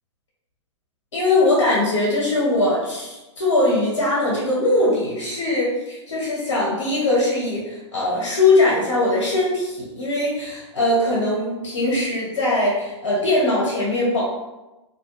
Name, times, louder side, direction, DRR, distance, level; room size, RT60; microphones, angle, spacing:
voice 1, 1.1-14.2, left 2 dB, 70° left, -6 dB, 1.0 m, -21 dB
2.4 x 2.1 x 3.1 m, 1.0 s
hypercardioid pair, 115°, 15 cm